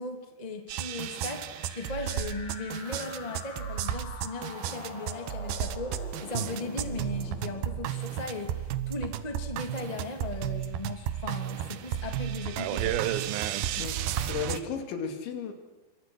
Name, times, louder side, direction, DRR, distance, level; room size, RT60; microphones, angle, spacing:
voice 1, 0.0-13.0, left 2 dB, 15° left, 5 dB, 1.7 m, -38 dB
sound 1, 0.7-14.6, right 11 dB, 70° right, 2.5 m, -33 dB
sound 2, 1.3-9.2, left 4 dB, 45° left, 3.4 m, -45 dB
voice 2, 13.8-15.5, left 6 dB, 85° left, 5 dB, 5.0 m, -35 dB
27.0 x 24.0 x 6.4 m, 1.2 s
omnidirectional pair, 5.1 m